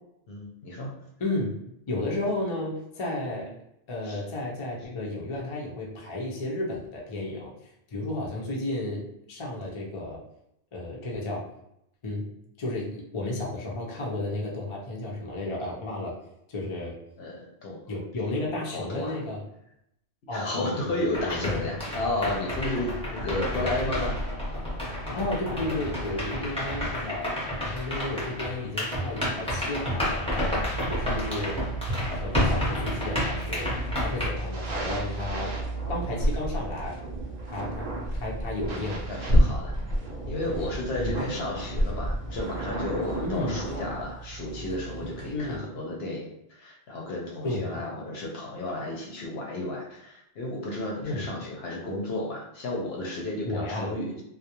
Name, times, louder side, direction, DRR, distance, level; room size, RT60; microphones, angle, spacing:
voice 1, 0.3-0.9 4.1-4.2 17.2-17.8 18.6-19.1 20.3-24.2 38.7-39.7 40.3-54.2, left 2 dB, 65° left, 0 dB, 0.8 m, -33 dB
voice 2, 1.2-1.5 1.9-3.5 3.9-7.5 7.9-9.0 9.3-10.2 10.7-11.4 12.0-12.3 12.6-16.1 16.5-16.9 17.9-19.4 20.3-22.1 25.1-31.6 31.9-33.7 34.0-35.5 35.9-37.0 37.4-37.9 38.2-39.0 40.9-41.2 43.2-43.6 45.3-45.7 47.4-47.8 51.0-51.3 53.4-53.9, left 2 dB, 45° left, -3 dB, 0.4 m, -33 dB
sound 1, 21.1-34.3, left 1 dB, 5° left, 0.7 m, -30 dB
sound 2, 30.7-45.6, right 3 dB, 55° right, 0.7 m, -38 dB
sound 3, 33.6-44.1, equal, 70° right, 0.4 m, -30 dB
2.3 x 2.1 x 2.8 m, 0.78 s
omnidirectional pair, 1.3 m